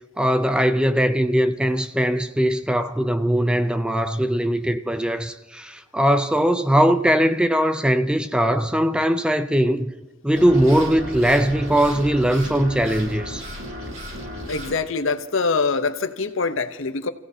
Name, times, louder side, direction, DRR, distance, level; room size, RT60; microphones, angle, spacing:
voice 1, 0.2-9.9 10.2-13.5, equal, 5° right, 0.5 m, -20 dB
sound 1, 10.3-14.7, equal, 70° right, 7.5 m, -34 dB
voice 2, 14.5-17.1, left 4 dB, 65° left, 0.8 m, -24 dB
29.0 x 16.0 x 2.8 m
head